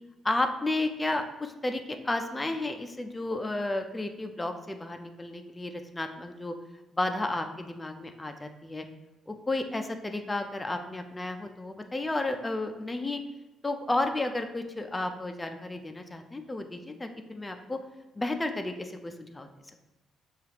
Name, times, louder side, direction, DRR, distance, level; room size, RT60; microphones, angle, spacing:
voice 1, 0.2-6.6 6.9-8.9 9.3-13.2 13.6-17.8 18.2-19.5, left 2 dB, 15° left, 5 dB, 0.4 m, -32 dB
6.5 x 2.4 x 2.9 m, 1.0 s
cardioid pair, 90°, 0 cm